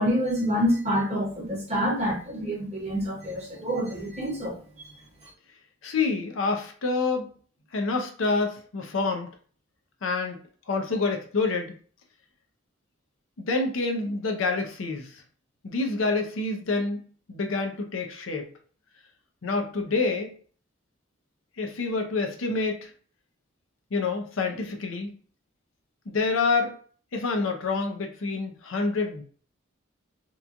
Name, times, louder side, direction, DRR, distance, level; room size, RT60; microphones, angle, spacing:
voice 1, 0.0-4.6, equal, 30° right, -3 dB, 0.9 m, -27 dB
voice 2, 5.8-7.3 7.7-9.3 10.0-10.4 10.7-11.7 13.4-15.2 15.6-17.0 17.3-18.5 19.4-20.3 21.6-22.9 23.9-25.1 26.1-26.7 27.1-29.2, left 3 dB, 75° left, 4 dB, 0.5 m, -27 dB
3.0 x 2.2 x 2.5 m, 0.44 s
head